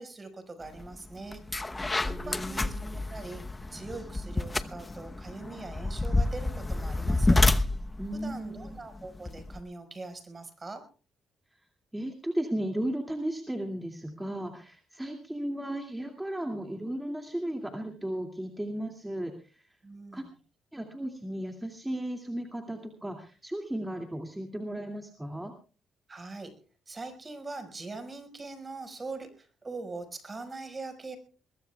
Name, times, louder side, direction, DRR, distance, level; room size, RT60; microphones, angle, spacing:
voice 1, 0.0-1.4 2.0-3.4 3.7-7.4 8.1-10.9 19.8-20.3 26.1-26.5 26.9-31.2, right 3 dB, 30° right, 8 dB, 5.2 m, -42 dB
sound 1, 0.8-0.9 1.3-9.6, left 2 dB, 15° left, 0.9 m, -29 dB
voice 2, 2.0-2.9 8.0-8.8 11.9-19.7 20.1-20.2 20.7-25.5, right 1 dB, 10° right, 3 dB, 2.4 m, -35 dB
22.0 x 22.0 x 2.3 m, 0.38 s
cardioid pair, 90°, 0 cm